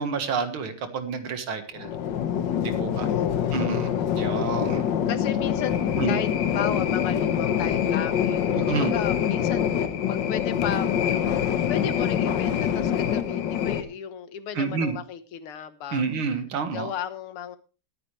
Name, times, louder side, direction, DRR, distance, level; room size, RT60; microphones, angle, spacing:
voice 1, 0.0-1.9 2.6-3.1 3.5-4.9 6.0-6.2 8.6-8.9 14.6-14.9 15.9-16.9, right 5 dB, 70° right, 8 dB, 2.3 m, -29 dB
sound 1, 1.8-13.8, left 9 dB, 60° left, 1.6 m, -25 dB
voice 2, 3.1-3.8 5.1-8.4 8.7-9.7 10.1-11.3 11.7-16.1 16.7-17.6, left 8 dB, 85° left, 11 dB, 2.0 m, -34 dB
20.0 x 9.1 x 3.2 m, 0.34 s
omnidirectional pair, 2.4 m